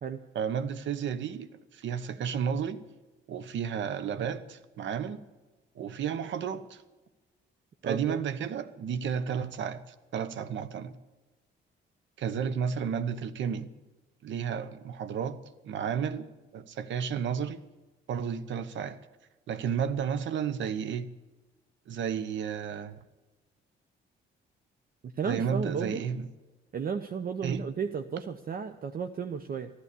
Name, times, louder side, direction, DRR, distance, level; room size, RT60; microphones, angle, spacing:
voice 1, 0.3-2.8 3.3-5.2 5.7-6.8 7.8-10.9 12.2-13.7 14.2-16.3 16.5-17.6 18.1-19.0 19.5-21.1 21.9-22.9 25.2-26.3 27.4-27.6, right 7 dB, 70° right, 1.0 m, -32 dB
voice 2, 7.8-8.2 25.2-26.1 26.7-29.7, right 6 dB, 50° right, 0.8 m, -33 dB
14.5 x 11.5 x 6.8 m
cardioid pair, 90°, 20 cm